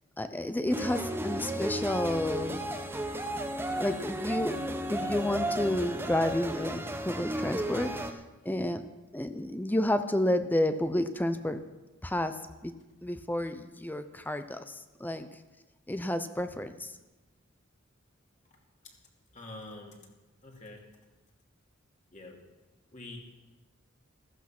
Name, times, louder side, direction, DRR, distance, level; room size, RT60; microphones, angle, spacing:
voice 1, 0.2-2.7 3.8-8.2 8.4-8.8 9.1-11.6 12.0-12.4 12.6-12.7 13.0-15.3 15.9-16.9, left 1 dB, 10° left, 10 dB, 0.7 m, -30 dB
sound 1, 0.7-8.1, right 1 dB, 10° right, 1.0 m, -34 dB
voice 2, 19.3-20.1 20.4-20.9 22.1-22.4 22.9-23.2, left 2 dB, 35° left, 1 dB, 2.8 m, -46 dB
14.5 x 14.5 x 6.1 m, 1.1 s
head